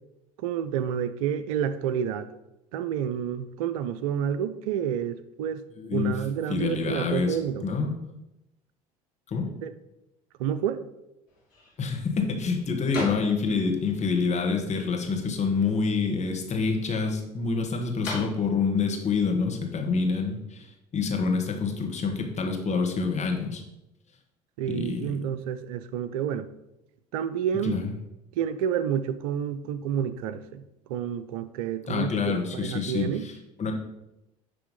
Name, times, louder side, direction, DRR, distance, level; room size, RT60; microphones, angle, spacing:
voice 1, 0.4-2.4 2.7-5.6 5.9-7.7 9.6-9.7 10.4-10.8 24.6-26.5 27.1-27.8 28.4-30.6 30.9-33.3, right 8 dB, 75° right, 13 dB, 0.5 m, -29 dB
voice 2, 5.8-6.2 6.5-7.4 7.6-7.9 9.3-9.5 11.8-23.6 24.7-25.1 27.6-27.9 31.9-33.7, left 5 dB, 40° left, 2 dB, 1.7 m, -27 dB
sound 1, 11.3-20.4, left 2 dB, 80° left, 3.0 m, -43 dB
10.0 x 3.5 x 5.4 m, 0.90 s
hypercardioid pair, 60°, 18 cm